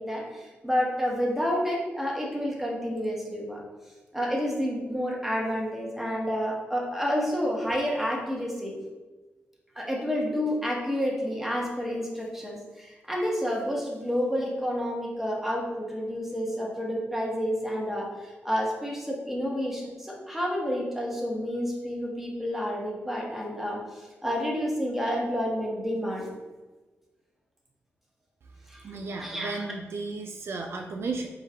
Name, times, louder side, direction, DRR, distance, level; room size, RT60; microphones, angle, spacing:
voice 1, 0.0-3.6 4.1-8.7 9.7-26.3 28.7-28.8 29.2-29.7, equal, 5° right, -3 dB, 1.1 m, -29 dB
voice 2, 28.8-31.3, right 3 dB, 60° right, 3 dB, 0.4 m, -34 dB
4.6 x 3.7 x 2.8 m, 1.2 s
wide cardioid pair, 110°, 5 cm